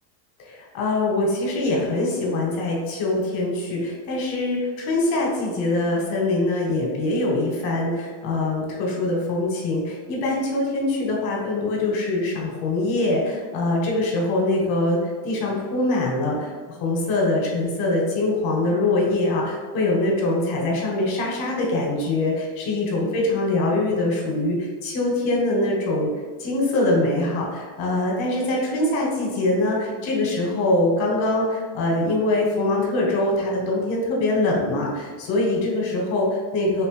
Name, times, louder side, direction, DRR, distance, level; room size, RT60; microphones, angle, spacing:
voice 1, 0.4-26.1 26.4-36.9, left 2 dB, 60° left, -2 dB, 1.3 m, -23 dB
3.3 x 2.9 x 3.2 m, 1.5 s
supercardioid pair, 135°, 50 cm